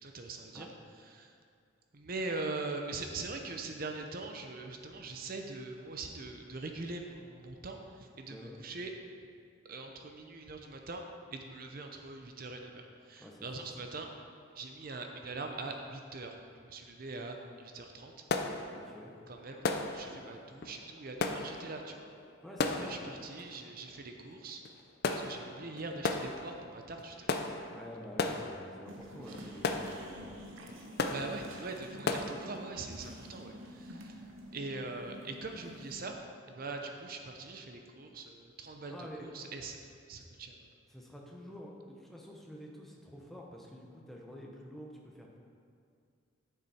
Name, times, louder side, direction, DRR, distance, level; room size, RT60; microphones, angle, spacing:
voice 1, 0.0-0.7 1.1-1.3 1.9-8.9 9.7-11.0 11.3-14.1 14.6-16.4 16.6-18.1 19.3-19.7 19.9-22.1 22.7-24.6 25.2-27.4 31.0-34.2 34.5-36.2 36.5-39.8 40.1-40.7, right 3 dB, 45° right, 3 dB, 0.6 m, -42 dB
sound 1, 17.3-17.4 17.8-32.4, left 3 dB, 50° left, 0.5 m, -37 dB
voice 2, 18.7-19.1 22.4-23.0 27.7-30.4 38.9-39.3 40.9-45.4, equal, ahead, -2 dB, 0.9 m, -48 dB
sound 2, 28.9-36.1, right 1 dB, 75° right, 1.0 m, -49 dB
9.7 x 6.9 x 4.3 m, 2.3 s
head